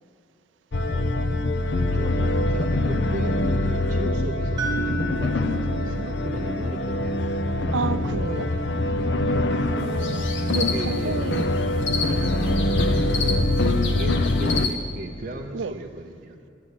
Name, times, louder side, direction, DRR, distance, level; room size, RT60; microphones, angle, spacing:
sound 1, 0.7-14.7, left 2 dB, 70° left, 0.6 m, -24 dB
voice 1, 0.9-1.2 1.9-7.2 9.0-9.4 10.5-11.2 12.4-16.4, right 2 dB, 45° right, 0.6 m, -37 dB
sound 2, 4.6-8.6, right 3 dB, 20° right, 1.5 m, -34 dB
voice 2, 7.7-8.5 9.7-11.5 15.5-15.7, right 5 dB, 85° right, 0.5 m, -31 dB
sound 3, 9.8-14.7, left 3 dB, 85° left, 1.6 m, -31 dB
11.0 x 10.0 x 8.4 m
head